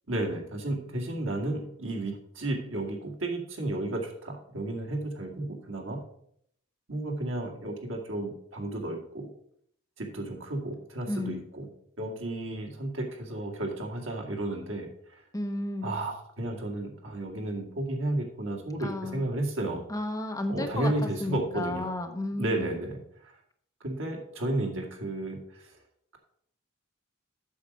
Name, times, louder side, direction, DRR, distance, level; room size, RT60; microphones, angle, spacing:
voice 1, 0.1-6.0 6.9-9.3 10.0-11.7 12.0-15.2 15.8-19.8 20.5-21.9 22.4-23.3 23.8-25.8, right 1 dB, 70° right, 1 dB, 2.0 m, -33 dB
voice 2, 11.1-11.4 15.3-15.9 18.8-19.3 19.9-20.9 21.2-22.7, left 1 dB, 15° left, 5 dB, 0.8 m, -33 dB
8.5 x 6.5 x 5.1 m, 0.68 s
head